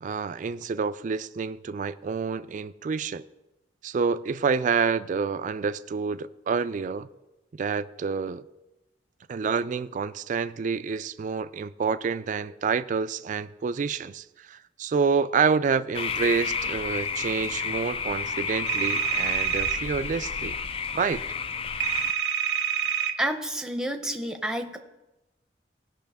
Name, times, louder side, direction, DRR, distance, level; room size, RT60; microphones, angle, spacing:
voice 1, 0.0-3.2 3.8-7.1 7.5-8.4 9.3-20.5 20.9-21.3, right 5 dB, 45° right, 0.3 m, -28 dB
sound 1, 15.9-22.1, left 5 dB, 30° left, 0.3 m, -31 dB
sound 2, 18.7-19.8 21.8-23.1, right 9 dB, 85° right, 0.7 m, -26 dB
voice 2, 23.2-24.8, right 1 dB, 5° right, 0.7 m, -29 dB
17.0 x 5.8 x 3.5 m
head